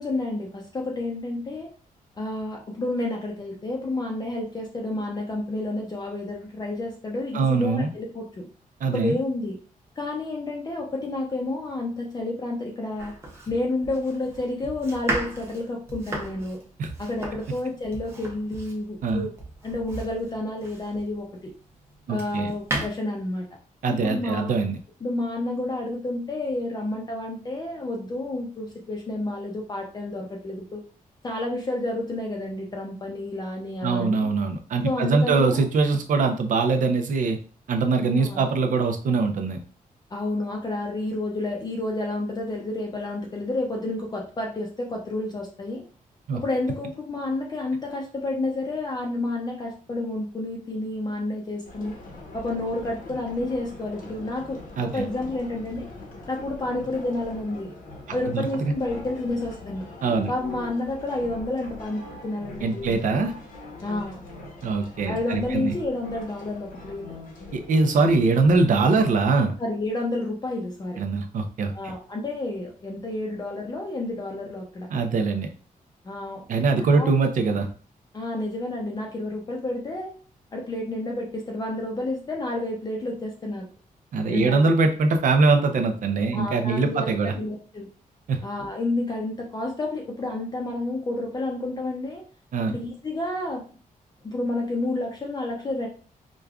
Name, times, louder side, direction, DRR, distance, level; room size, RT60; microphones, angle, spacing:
voice 1, 0.0-1.7 2.2-8.5 8.9-9.6 10.0-13.1 13.5-16.6 17.0-19.3 19.6-21.5 22.1-23.5 23.9-24.5 25.0-30.8 31.2-34.3 34.8-35.6 38.1-38.4 40.1-45.8 46.3-52.0 52.3-55.9 56.3-57.7 58.1-59.9 60.3-62.9 63.8-64.2 65.1-67.1 69.6-71.0 71.7-74.9 76.0-76.4 76.8-77.1 78.1-80.1 80.5-83.7 84.3-84.7 86.3-87.9 88.4-92.2 92.7-93.7 94.2-95.9, left 2 dB, 30° left, 0 dB, 0.5 m, -30 dB
voice 2, 7.3-7.9 8.8-9.2 16.8-16.9 19.0-19.3 22.1-22.5 23.8-24.8 33.8-37.4 37.7-39.6 46.3-46.4 54.8-55.1 58.3-58.7 60.0-60.3 62.6-63.3 64.6-65.7 67.5-69.5 71.0-71.7 74.9-75.5 76.5-77.7 84.1-87.3 88.3-88.4 92.5-92.8, right 4 dB, 65° right, 5 dB, 0.5 m, -22 dB
Domestic sounds home sounds, 13.0-21.2 21.7-22.9, right 2 dB, 15° right, 0.6 m, -35 dB
sound 1, 51.6-69.3, left 2 dB, 70° left, 0.9 m, -42 dB
4.9 x 2.3 x 2.3 m, 0.39 s
wide cardioid pair, 170°, 15 cm